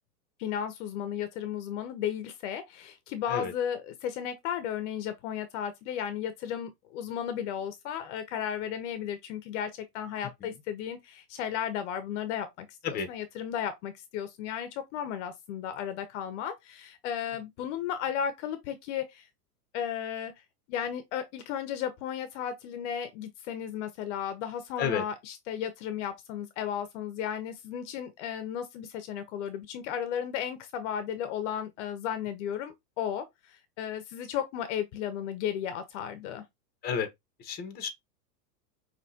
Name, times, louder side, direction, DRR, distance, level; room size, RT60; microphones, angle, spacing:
voice 1, 0.4-19.3 19.7-20.3 20.7-36.4, left 9 dB, 50° left, 0.8 m, -34 dB
voice 2, 37.4-37.9, left 7 dB, 20° left, 1.0 m, -31 dB
5.6 x 3.0 x 2.8 m
supercardioid pair, 140°, 47 cm